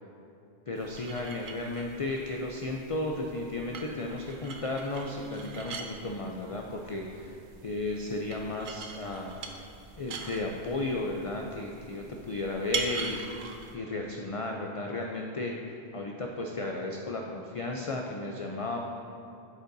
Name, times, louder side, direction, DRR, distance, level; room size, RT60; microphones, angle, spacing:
voice 1, 0.7-7.4 7.6-9.4 10.0-13.2 13.7-15.6 15.9-18.8, left 2 dB, 45° left, 1 dB, 0.4 m, -34 dB
sound 1, 0.8-13.7, right 4 dB, 60° right, 0.7 m, -42 dB
8.3 x 8.0 x 2.6 m, 2.7 s
omnidirectional pair, 1.0 m